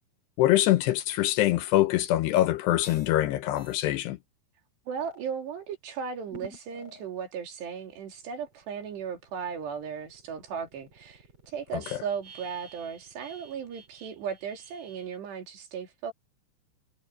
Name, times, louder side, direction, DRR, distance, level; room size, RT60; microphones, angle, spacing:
voice 1, 0.4-4.2 11.9-12.0, left 14 dB, 75° left, 2.8 m, -24 dB
sound 1, 2.8-3.2 3.6-3.9 4.9-5.2 6.3-7.1 7.6-15.2, right 2 dB, 30° right, 4.9 m, -51 dB
voice 2, 4.9-16.1, right 7 dB, 70° right, 5.0 m, -36 dB
omnidirectional pair, 5.2 m